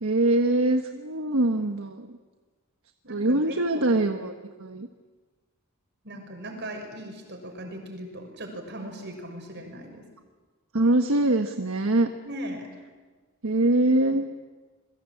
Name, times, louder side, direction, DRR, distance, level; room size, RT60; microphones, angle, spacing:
voice 1, 0.0-2.2 3.1-4.3 4.6-4.9 10.7-12.1 13.4-14.3, right 2 dB, 70° right, 6 dB, 1.4 m, -23 dB
voice 2, 3.0-3.8 6.0-10.1 12.2-12.7, right 1 dB, 50° right, 4 dB, 6.2 m, -38 dB
28.0 x 22.5 x 8.7 m, 1.4 s
head